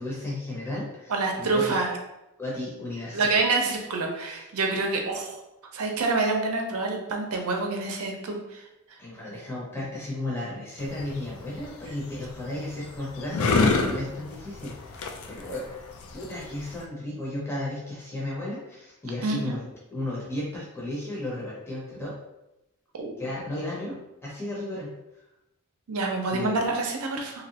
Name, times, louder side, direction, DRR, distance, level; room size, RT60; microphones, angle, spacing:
voice 1, 0.0-1.1 1.4-1.8 2.4-3.3 9.0-15.7 16.1-22.2 23.2-24.9 26.3-26.5, left 1 dB, 10° left, -6 dB, 0.7 m, -34 dB
voice 2, 1.1-1.9 3.1-5.4 5.7-8.6 19.2-19.6 22.9-23.1 25.9-27.4, right 3 dB, 75° right, 2 dB, 0.6 m, -27 dB
sound 1, 10.8-16.8, left 3 dB, 70° left, 0.4 m, -29 dB
3.0 x 2.7 x 2.8 m, 0.93 s
head